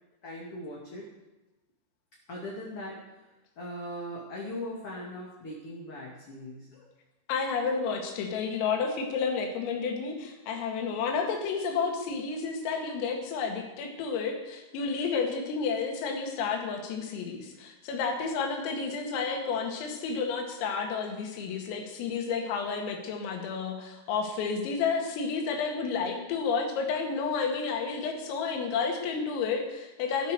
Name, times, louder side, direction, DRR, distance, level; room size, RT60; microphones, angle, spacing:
voice 1, 0.2-1.1 2.3-3.3 3.6-6.8, left 1 dB, 40° left, -4 dB, 2.2 m, -40 dB
voice 2, 7.3-30.3, left 5 dB, 85° left, 3 dB, 4.8 m, -31 dB
14.0 x 12.0 x 6.8 m, 1.1 s
omnidirectional pair, 5.8 m